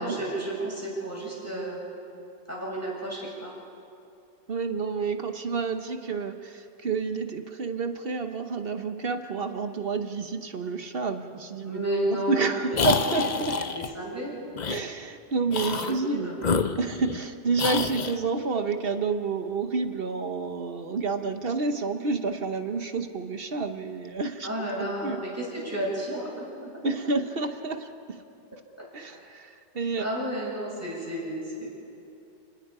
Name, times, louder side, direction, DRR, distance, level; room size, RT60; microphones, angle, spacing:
voice 1, 0.0-1.8 2.5-3.5 11.6-13.3 13.7-14.3 15.9-16.4 24.4-26.8 29.0-29.2 30.0-31.7, right 1 dB, 10° right, -5 dB, 7.0 m, -32 dB
voice 2, 4.5-11.8 12.1-13.7 14.7-16.3 16.8-24.5 24.8-25.2 26.8-28.2 28.9-30.3, right 4 dB, 40° right, 8 dB, 1.0 m, -29 dB
sound 1, 12.7-13.9 14.6-14.8 15.5-16.0 16.4-17.3 17.6-18.2, left 5 dB, 70° left, 0.4 m, -27 dB
30.0 x 19.5 x 4.9 m, 2.7 s
omnidirectional pair, 1.9 m